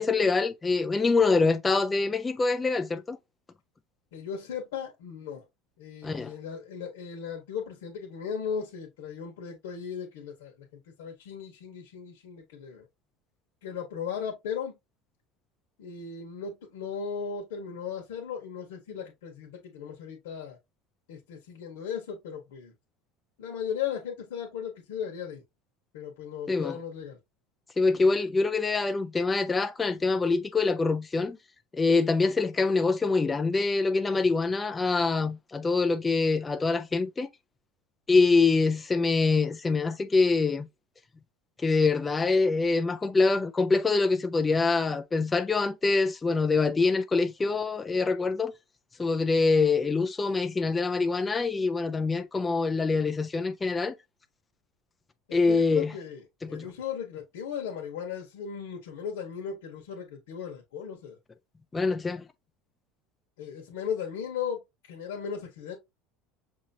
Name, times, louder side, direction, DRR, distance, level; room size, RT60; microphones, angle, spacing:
voice 1, 0.0-3.2 6.0-6.3 26.5-26.8 27.8-31.4 31.7-37.3 38.1-40.7 41.6-48.5 49.0-53.9 55.3-55.9 56.4-56.7 61.7-62.2, left 3 dB, 15° left, 0.4 m, -25 dB
voice 2, 4.1-5.4 5.8-10.5 11.0-12.9 13.6-14.7 15.8-20.6 21.1-22.7 23.4-25.4 25.9-27.2 55.3-56.2 56.5-61.2 63.4-65.8, left 7 dB, 90° left, 1.3 m, -36 dB
6.2 x 2.9 x 2.8 m
supercardioid pair, 120°, 0 cm